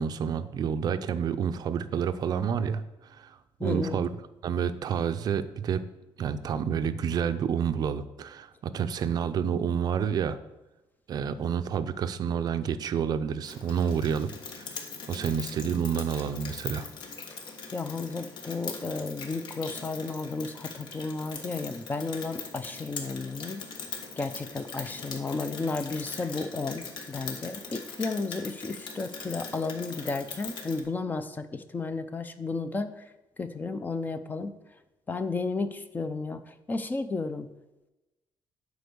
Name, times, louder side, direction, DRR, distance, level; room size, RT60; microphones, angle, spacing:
voice 1, 0.0-4.1 4.4-5.9 6.2-10.4 11.1-14.3 15.1-16.9, right 7 dB, 50° right, 11 dB, 0.5 m, -29 dB
voice 2, 3.6-4.0 17.3-17.4 17.7-23.6 24.2-33.0 33.4-34.5 35.1-37.5, left 3 dB, 20° left, 10 dB, 0.5 m, -33 dB
Rain, 13.5-30.8, left 5 dB, 65° left, 1.3 m, -41 dB
8.0 x 5.2 x 6.8 m, 1.0 s
cardioid pair, 155°, 9 cm